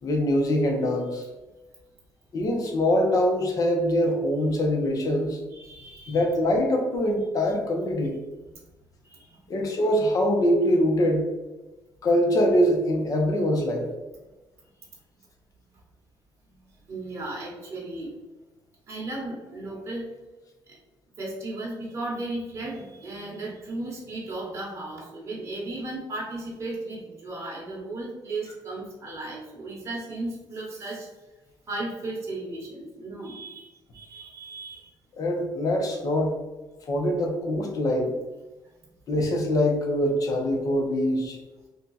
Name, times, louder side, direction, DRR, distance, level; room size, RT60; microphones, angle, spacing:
voice 1, 0.0-1.2 2.3-5.4 6.1-8.2 9.5-11.3 12.0-13.9 35.2-36.4 36.9-38.1 39.1-41.4, equal, 45° left, 2 dB, 0.8 m, -23 dB
voice 2, 5.5-6.3 9.0-9.5 14.6-14.7 16.4-18.1 18.9-20.1 20.7-20.8 21.2-31.1 31.7-34.9, right 2 dB, 35° right, -4 dB, 1.0 m, -35 dB
2.7 x 2.3 x 4.0 m, 1.1 s
cardioid pair, 120°, 8 cm